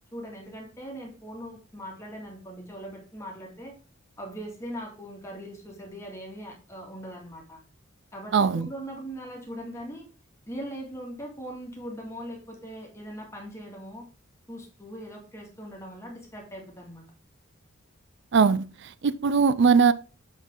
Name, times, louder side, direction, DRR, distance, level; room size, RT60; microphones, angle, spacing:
voice 1, 0.1-3.8 4.2-7.6 8.1-10.1 10.5-14.1 14.5-17.0, equal, 15° left, 2.2 m, -40 dB
voice 2, 8.3-8.7 18.3-19.9, right 5 dB, 55° right, 0.4 m, -21 dB
7.2 x 5.6 x 3.8 m
head